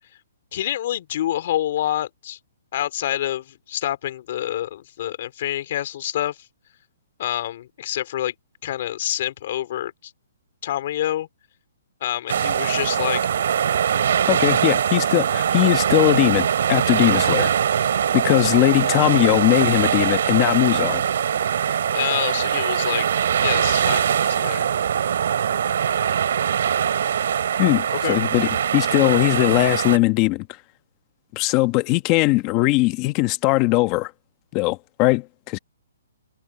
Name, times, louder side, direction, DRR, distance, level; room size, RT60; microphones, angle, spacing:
voice 1, 0.5-2.4 2.7-6.4 7.2-8.3 8.6-10.1 10.6-11.3 12.0-13.2 17.8-18.0 18.3-18.5 21.9-23.1 23.4-24.7 27.9-28.2, left 12 dB, 40° left, 3.6 m, -27 dB
sound 1, 12.3-30.0, right 8 dB, 60° right, 3.1 m, -22 dB
voice 2, 14.3-17.5 18.1-21.0 27.6-30.5 31.3-34.1 34.5-35.6, left 21 dB, 25° left, 1.1 m, -20 dB
hypercardioid pair, 165°, 0 cm